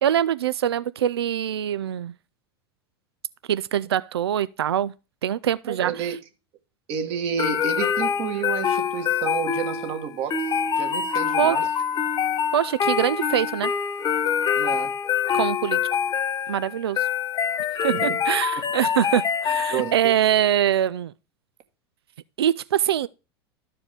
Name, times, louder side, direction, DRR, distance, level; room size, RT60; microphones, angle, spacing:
voice 1, 0.0-2.1 3.5-4.9 5.2-6.1 11.4-11.6 12.5-13.7 15.3-15.8 16.5-17.1 17.8-21.1 22.4-23.1, right 10 dB, 80° right, 0.4 m, -23 dB
voice 2, 5.7-6.2 6.9-11.7 14.6-14.9 17.9-18.1 19.7-20.1, right 8 dB, 50° right, 1.6 m, -30 dB
sound 1, 7.4-20.2, left 7 dB, 30° left, 1.1 m, -25 dB
12.5 x 4.9 x 3.4 m
hypercardioid pair, 90°, 13 cm